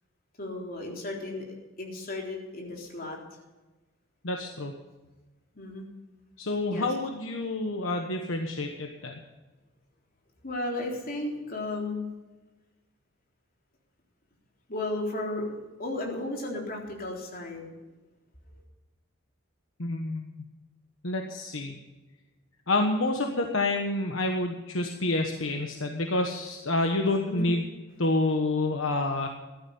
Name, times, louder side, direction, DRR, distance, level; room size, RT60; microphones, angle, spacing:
voice 1, 0.4-1.5 1.8-3.2 5.6-5.9 6.7-6.9 10.4-12.1 14.7-17.7 27.2-27.5, left 2 dB, 45° left, -1 dB, 3.7 m, -34 dB
voice 2, 4.2-4.7 6.4-9.2 19.8-20.3 21.0-21.7 22.7-27.6 28.0-29.3, left 2 dB, 70° left, 3 dB, 1.3 m, -28 dB
15.0 x 12.0 x 5.5 m, 1.2 s
head